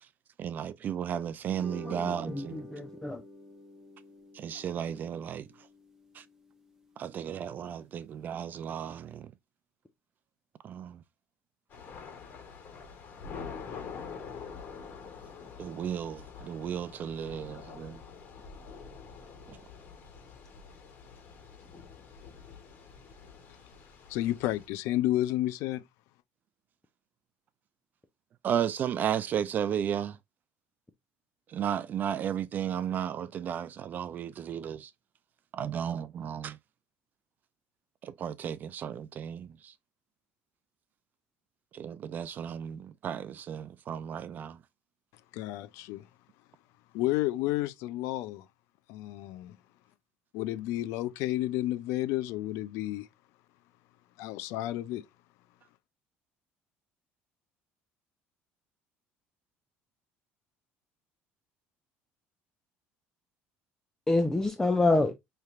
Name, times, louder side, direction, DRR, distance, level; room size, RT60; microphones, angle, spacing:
voice 1, 0.4-2.6 4.3-5.5 6.1-6.2 7.0-9.3 10.6-11.0 15.6-18.0 19.5-19.6 28.4-30.2 31.5-34.9 35.5-36.6 38.0-39.7 41.7-44.6, right 9 dB, 40° right, 0.3 m, -34 dB
sound 1, 1.4-8.0, equal, 10° right, 1.0 m, -50 dB
voice 2, 1.8-3.2 64.1-65.1, left 2 dB, 10° left, 0.6 m, -27 dB
Thunder / Rain, 11.7-24.7, left 6 dB, 40° left, 2.3 m, -46 dB
voice 3, 24.1-25.8 45.3-46.0 46.9-48.5 48.9-49.6 50.3-53.1 54.2-55.1, left 15 dB, 80° left, 0.5 m, -31 dB
5.5 x 3.3 x 2.4 m
cardioid pair, 130°, 5 cm